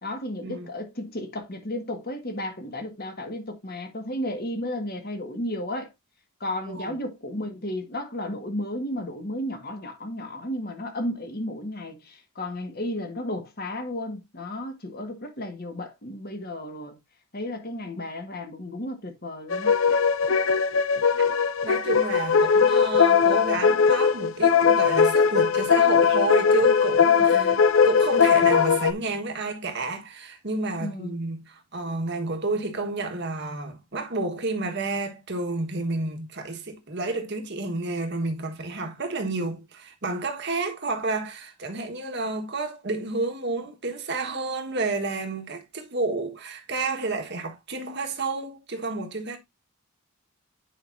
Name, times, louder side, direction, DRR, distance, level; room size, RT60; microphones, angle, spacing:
voice 1, 0.0-5.9 6.4-17.0 17.3-19.8 27.2-27.7 30.8-31.2, left 1 dB, 45° left, 1.7 m, -33 dB
sound 1, 19.5-28.9, left 6 dB, 65° left, 0.5 m, -20 dB
voice 2, 21.6-27.6 27.8-49.4, right 3 dB, 50° right, 1.5 m, -30 dB
9.7 x 5.1 x 2.7 m
head